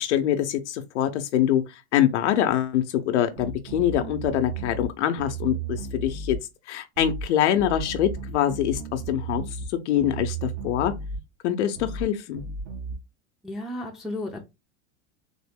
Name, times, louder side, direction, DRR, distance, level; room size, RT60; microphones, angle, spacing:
voice 1, 0.0-6.4 6.7-9.4 9.9-10.9 11.4-12.4, left 11 dB, 85° left, 0.7 m, -24 dB
sound 1, 3.4-4.9 5.2-6.4 7.0-7.3 7.6-9.7 10.0-11.2 11.8-12.1 12.4-13.0, right 4 dB, 60° right, 1.1 m, -34 dB
voice 2, 13.4-14.4, left 1 dB, ahead, 0.5 m, -34 dB
3.6 x 2.0 x 3.5 m
supercardioid pair, 125°, 34 cm